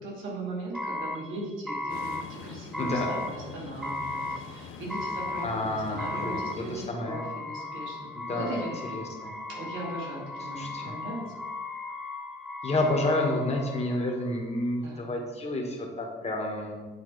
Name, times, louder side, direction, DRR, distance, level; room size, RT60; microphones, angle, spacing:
voice 1, 0.0-9.0 9.5-11.3 14.8-15.1, right 2 dB, 90° right, -3 dB, 2.3 m, -38 dB
sound 1, 0.7-14.3, left 2 dB, ahead, 0.6 m, -36 dB
sound 2, 1.9-6.9, left 7 dB, 85° left, 0.5 m, -44 dB
voice 2, 2.8-3.1 5.4-7.2 8.1-8.6 8.9-9.4 10.5-10.9 12.6-16.8, left 1 dB, 35° left, 1 dB, 1.6 m, -30 dB
8.5 x 4.1 x 4.1 m, 1.3 s
cardioid pair, 90°, 20 cm